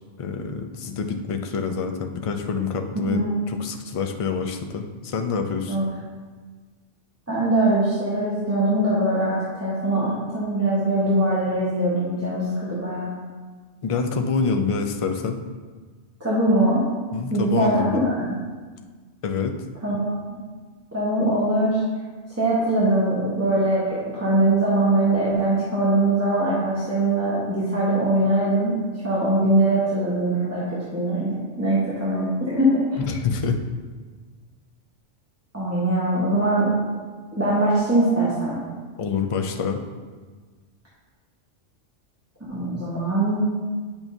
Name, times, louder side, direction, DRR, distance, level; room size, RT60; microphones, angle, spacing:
voice 1, 0.2-5.8 13.8-15.4 17.1-18.0 19.2-19.6 33.0-33.6 39.0-39.8, left 5 dB, 45° left, 5 dB, 0.4 m, -26 dB
voice 2, 7.3-13.1 16.2-16.8 17.3-18.4 19.8-20.2 20.9-21.8 22.4-28.7 29.0-30.6 30.9-33.0 35.5-36.7 37.4-38.6 42.5-43.4, right 1 dB, 15° right, -9 dB, 1.1 m, -22 dB
8.8 x 5.8 x 2.7 m, 1.4 s
omnidirectional pair, 1.2 m